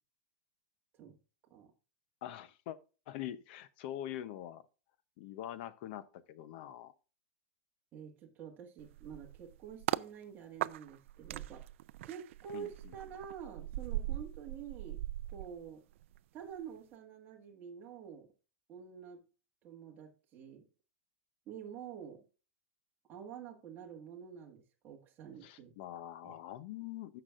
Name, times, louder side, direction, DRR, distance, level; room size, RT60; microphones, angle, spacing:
voice 1, 2.2-2.8 3.1-4.6 5.2-6.9 12.5-12.9 25.4-27.2, left 12 dB, 45° left, 0.7 m, -44 dB
voice 2, 7.9-11.7 12.0-15.0 15.3-15.8 16.3-18.3 18.7-19.2 19.6-20.6 21.5-22.2 23.1-25.7 26.2-26.4, right 8 dB, 25° right, 1.7 m, -48 dB
sound 1, 8.8-10.1 10.6-16.2 16.5-16.8, right 14 dB, 60° right, 0.4 m, -40 dB
16.0 x 6.0 x 2.5 m
supercardioid pair, 165°, 8 cm